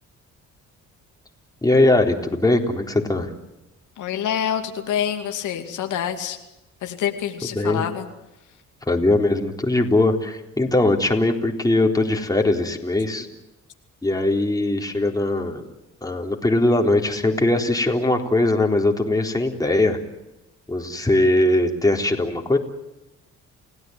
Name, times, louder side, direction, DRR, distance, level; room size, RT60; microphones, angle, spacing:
voice 1, 1.6-3.3 7.5-7.8 8.9-13.3 14.0-15.6 16.0-20.0 20.7-22.6, left 2 dB, 10° left, 2 dB, 3.9 m, -20 dB
voice 2, 4.0-6.4 6.8-8.1, left 9 dB, 80° left, 5 dB, 2.6 m, -26 dB
30.0 x 16.5 x 9.5 m, 0.94 s
cardioid pair, 90°, 30 cm